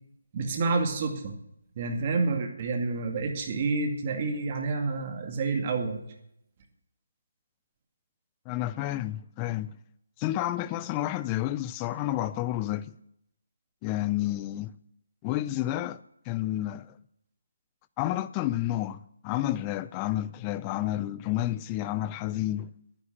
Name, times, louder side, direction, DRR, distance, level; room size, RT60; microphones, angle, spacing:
voice 1, 0.3-1.3 1.8-6.0, right 3 dB, 35° right, 2.1 m, -29 dB
voice 2, 8.5-9.7 10.2-12.9 13.8-14.7 15.2-16.0 16.3-16.9 18.0-22.7, left 14 dB, 20° left, 0.5 m, -30 dB
11.0 x 10.0 x 6.7 m
figure-of-eight pair, 155°, 0 cm